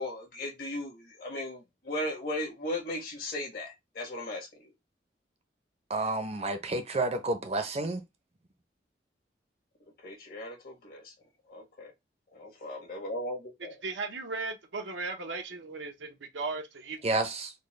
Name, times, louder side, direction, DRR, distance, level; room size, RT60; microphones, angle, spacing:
voice 1, 0.0-4.7 10.0-11.1 11.5-11.9 12.3-13.8, left 1 dB, 55° left, 1.5 m, -37 dB
voice 2, 5.9-8.0 17.0-17.5, right 2 dB, 35° right, 0.6 m, -30 dB
voice 3, 13.6-17.1, right 3 dB, 85° right, 0.8 m, -37 dB
4.3 x 2.2 x 3.2 m
head